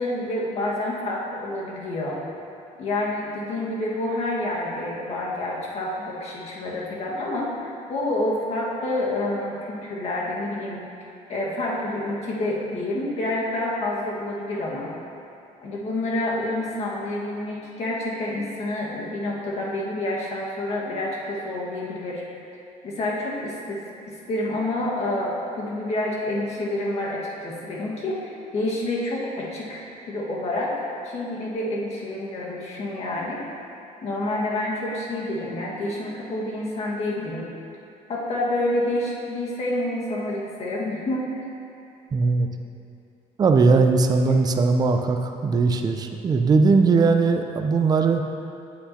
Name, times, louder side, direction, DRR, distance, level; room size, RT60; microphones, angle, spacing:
voice 1, 0.0-2.2 2.8-10.9 11.3-14.9 15.6-22.2 22.8-23.8 24.1-33.4 34.0-37.5 38.1-41.4 44.0-44.3, left 1 dB, 45° left, -4 dB, 1.6 m, -28 dB
voice 2, 42.1-42.5 43.4-48.2, right 4 dB, 25° right, 5 dB, 0.5 m, -19 dB
8.3 x 7.9 x 2.8 m, 2.6 s
cardioid pair, 115°, 15 cm